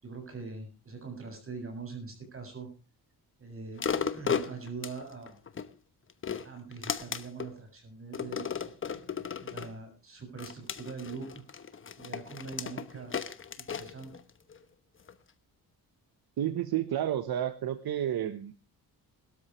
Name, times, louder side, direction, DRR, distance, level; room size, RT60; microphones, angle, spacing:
voice 1, 0.0-2.7 3.4-5.3 6.4-8.7 9.4-11.4 12.0-13.2 13.6-14.2, right 4 dB, 35° right, 4 dB, 7.0 m, -42 dB
sound 1, 3.8-5.7 6.1-7.5 8.1-9.7 10.4-14.6 15.1-15.2, left 7 dB, 30° left, 1.1 m, -35 dB
voice 2, 16.4-18.5, right 11 dB, 70° right, 10 dB, 1.2 m, -31 dB
20.0 x 13.0 x 3.2 m, 0.32 s
wide cardioid pair, 155°, 39 cm